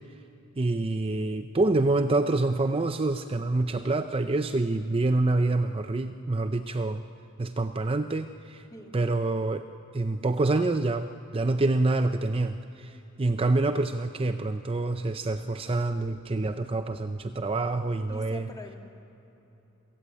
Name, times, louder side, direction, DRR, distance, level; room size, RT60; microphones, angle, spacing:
voice 1, 0.6-7.0 7.4-8.6 8.9-9.6 9.9-18.5, right 2 dB, 25° right, 8 dB, 0.5 m, -27 dB
voice 2, 18.1-18.8, left 1 dB, 20° left, 2 dB, 2.3 m, -44 dB
23.5 x 15.5 x 9.0 m, 3.0 s
head